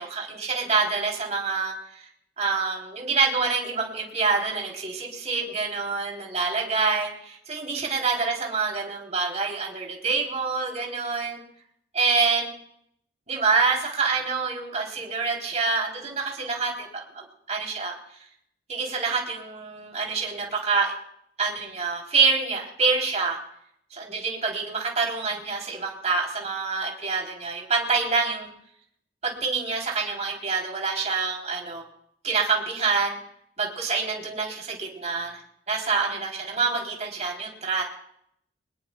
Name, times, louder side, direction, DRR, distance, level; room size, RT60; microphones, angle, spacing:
voice 1, 0.0-2.0 2.4-11.4 11.9-12.5 13.3-17.9 18.7-20.9 21.4-23.4 23.9-28.5 29.2-31.8 32.2-33.2 33.6-35.4 35.7-37.8, right 4 dB, 40° right, -1 dB, 3.7 m, -26 dB
24.0 x 20.5 x 2.4 m, 0.70 s
head